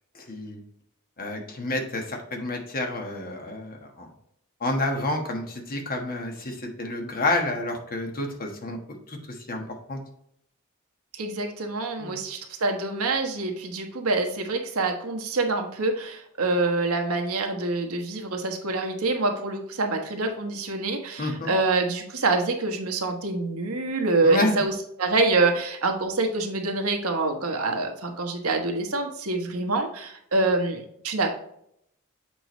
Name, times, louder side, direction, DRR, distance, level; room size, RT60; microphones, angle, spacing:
voice 1, 0.1-0.6 1.2-4.1 4.6-8.8 9.1-10.0 12.0-12.2 21.2-21.5 24.2-24.6, left 2 dB, 45° left, 3 dB, 1.3 m, -29 dB
voice 2, 11.1-31.3, right 3 dB, 75° right, 3 dB, 1.2 m, -26 dB
7.8 x 4.5 x 3.1 m, 0.72 s
head